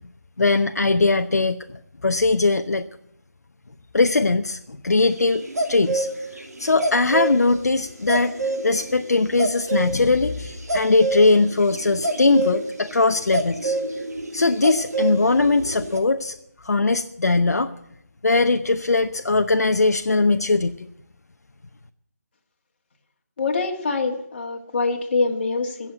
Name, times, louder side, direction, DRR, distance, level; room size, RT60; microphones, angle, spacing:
voice 1, 0.4-1.6 2.0-2.9 3.9-4.6 4.8-5.4 5.7-6.1 6.6-8.3 8.6-13.8 14.3-16.4 16.6-17.7 18.2-20.9, left 3 dB, 70° left, 7 dB, 0.8 m, -20 dB
sound 1, 5.2-7.3 7.7-7.8 8.1-16.0, right 2 dB, 70° right, 2.9 m, -27 dB
voice 2, 23.4-25.9, left 3 dB, 35° left, 1 dB, 2.2 m, -24 dB
17.0 x 7.5 x 9.5 m, 0.75 s
figure-of-eight pair, 160°, 9 cm